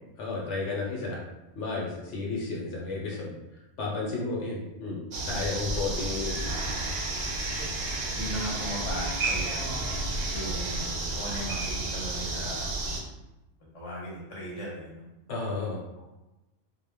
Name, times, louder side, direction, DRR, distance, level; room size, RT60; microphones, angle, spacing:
voice 1, 0.2-1.2 1.6-3.3 3.8-6.5 15.3-15.8, left 3 dB, 70° left, -3 dB, 0.9 m, -32 dB
sound 1, 5.1-13.0, right 2 dB, 65° right, 0.7 m, -31 dB
voice 2, 8.1-9.6 10.3-12.7 13.7-15.0 16.0-16.1, equal, 30° left, -4 dB, 0.7 m, -37 dB
2.1 x 2.0 x 3.4 m, 1.0 s
omnidirectional pair, 1.3 m